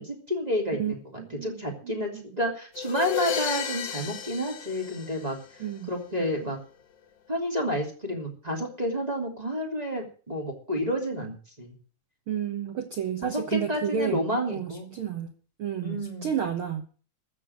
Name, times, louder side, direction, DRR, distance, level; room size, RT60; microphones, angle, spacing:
voice 1, 0.0-5.4 5.9-6.6 7.3-11.7 13.2-14.9 15.8-16.3, equal, 15° right, 0 dB, 3.0 m, -30 dB
voice 2, 0.7-1.6 1.8-2.2 5.6-5.9 12.3-14.2 14.5-15.3 15.6-16.8, right 8 dB, 55° right, 6 dB, 1.6 m, -31 dB
sound 1, 2.8-5.7, left 7 dB, 70° left, 3.0 m, -33 dB
15.0 x 6.1 x 9.5 m, 0.41 s
omnidirectional pair, 3.5 m